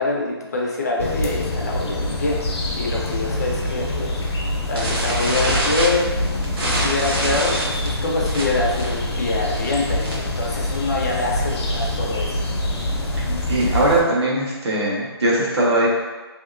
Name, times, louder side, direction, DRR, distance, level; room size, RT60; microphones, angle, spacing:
voice 1, 0.0-4.2 4.7-6.0 6.6-12.5 13.3-13.4, left 3 dB, 40° left, -2 dB, 0.5 m, -25 dB
sound 1, 1.0-14.0, left 1 dB, 85° left, 0.7 m, -25 dB
sound 2, 4.7-10.4 10.6-10.9 11.2-11.3 11.6-11.9 12.4-13.9, right 1 dB, 55° right, 0.8 m, -26 dB
voice 2, 13.5-15.9, right 1 dB, 85° right, -5 dB, 1.1 m, -20 dB
2.9 x 2.8 x 2.5 m, 1.3 s
hypercardioid pair, 175°, 14 cm